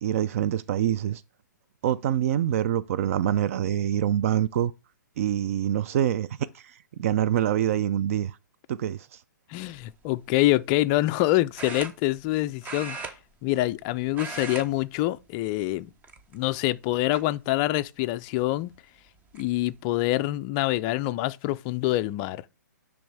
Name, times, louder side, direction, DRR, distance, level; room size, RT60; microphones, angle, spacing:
voice 1, 0.0-1.2 1.8-4.7 5.2-6.3 6.5-8.4 8.7-9.2, right 11 dB, 50° right, 0.4 m, -25 dB
voice 2, 9.5-13.1 13.4-15.9 16.3-18.7 19.3-22.4, left 16 dB, 30° left, 0.3 m, -26 dB
sound 1, 9.6-9.9 11.6-12.3 12.6-13.8 14.1-14.7 15.0-15.2 16.0-16.6 17.1-17.2 18.7-18.8 19.1-19.5, right 4 dB, 15° right, 0.8 m, -38 dB
10.0 x 3.4 x 3.3 m
hypercardioid pair, 135°, 10 cm